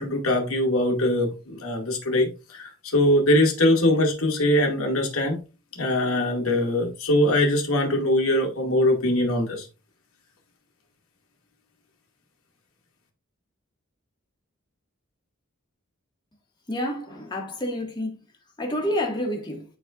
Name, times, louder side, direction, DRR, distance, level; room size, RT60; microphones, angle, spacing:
voice 1, 0.0-5.4 5.8-9.7, left 1 dB, 85° left, 2.3 m, -22 dB
voice 2, 16.7-18.2 18.6-19.6, left 1 dB, 20° left, 1.8 m, -28 dB
11.5 x 4.5 x 2.5 m
head